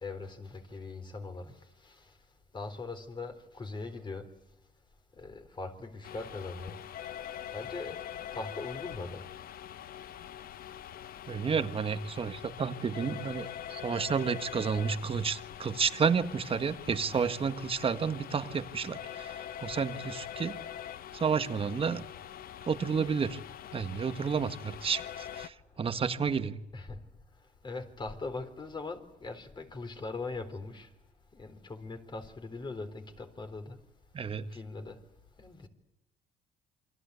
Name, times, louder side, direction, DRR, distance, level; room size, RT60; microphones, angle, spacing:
voice 1, 0.0-1.5 1.8-2.0 2.5-4.3 5.2-6.8 7.5-8.0 8.3-9.2 17.1-17.3 26.7-27.0 27.6-30.9 31.3-33.8 34.5-35.0 35.4-35.7, left 3 dB, 25° left, 3.9 m, -40 dB
sound 1, 6.0-25.5, left 10 dB, 60° left, 0.9 m, -43 dB
voice 2, 11.3-19.3 19.6-20.6 21.1-22.0 22.7-23.4 23.7-26.6 34.1-34.5, right 6 dB, 35° right, 1.6 m, -31 dB
28.0 x 24.0 x 8.3 m
cardioid pair, 110°, 17 cm